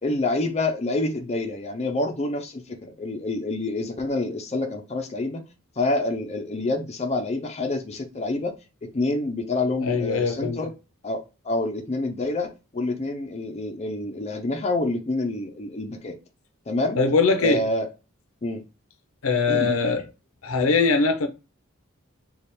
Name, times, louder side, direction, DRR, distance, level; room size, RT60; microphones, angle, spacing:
voice 1, 0.0-5.4 5.8-8.5 8.9-10.7 11.0-16.2 16.7-17.0 17.4-17.9 18.4-18.6 19.5-20.0, left 2 dB, 30° left, 0.6 m, -27 dB
voice 2, 9.8-10.6 17.0-17.6 19.2-20.0 20.4-21.3, left 4 dB, 70° left, 0.6 m, -21 dB
3.3 x 2.4 x 4.2 m
head